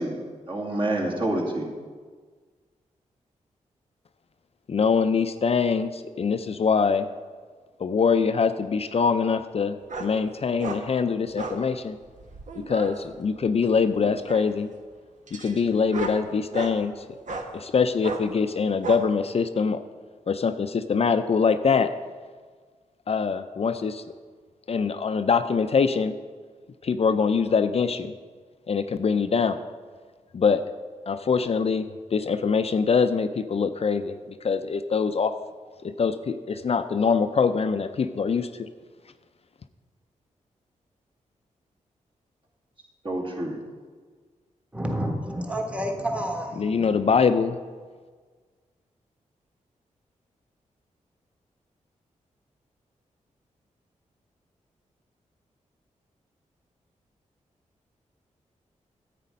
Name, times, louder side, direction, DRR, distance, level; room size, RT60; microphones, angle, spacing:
voice 1, 0.0-1.7 43.0-43.6, right 1 dB, 40° right, -2 dB, 2.3 m, -28 dB
voice 2, 4.7-7.1 7.8-12.0 12.6-14.7 15.3-17.0 17.5-19.8 20.3-21.9 23.1-24.0 24.7-26.1 26.8-28.1 28.7-29.6 30.3-30.6 31.1-31.9 32.1-35.3 35.8-38.7 46.6-47.6, left 5 dB, 50° left, 9 dB, 0.5 m, -24 dB
sound 1, 9.9-10.1 10.6-10.8 11.4-11.6 12.2-12.9 14.0-14.6 15.3-16.8 17.3-17.5 18.0-18.2 18.8-19.0, right 3 dB, 70° right, 1.2 m, -34 dB
voice 3, 44.7-46.9, equal, 10° right, 3 dB, 1.4 m, -29 dB
9.9 x 8.3 x 5.3 m, 1.5 s
cardioid pair, 70°, 13 cm